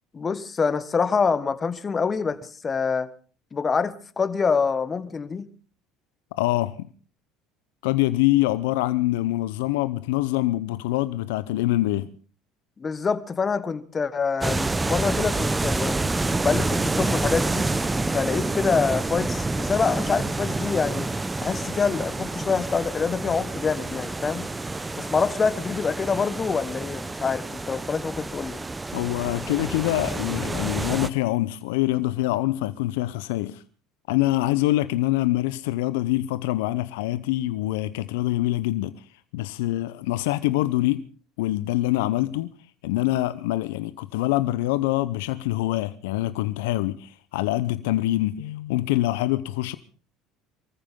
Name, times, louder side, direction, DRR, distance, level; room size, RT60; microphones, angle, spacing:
voice 1, 0.1-3.1 3.5-5.5 12.8-16.1 16.4-17.7 18.1-21.1 21.4-24.5 25.0-28.6, left 5 dB, 30° left, 1.4 m, -26 dB
voice 2, 6.4-6.9 7.8-12.1 28.9-33.6 34.1-39.0 39.3-41.0 41.4-42.5 42.8-49.8, left 16 dB, 80° left, 0.6 m, -25 dB
sound 1, 14.4-31.1, right 2 dB, 15° right, 0.9 m, -28 dB
23.5 x 14.5 x 3.7 m
hypercardioid pair, 75°, 0 cm